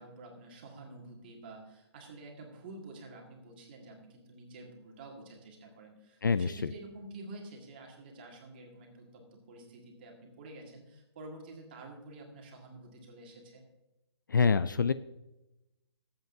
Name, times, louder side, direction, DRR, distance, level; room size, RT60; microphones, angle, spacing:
voice 1, 0.0-13.6, right 2 dB, 20° right, 1 dB, 1.7 m, -49 dB
voice 2, 6.2-6.7 14.3-14.9, left 5 dB, 45° left, 14 dB, 0.4 m, -26 dB
19.0 x 7.9 x 2.6 m, 0.96 s
hypercardioid pair, 175°, 14 cm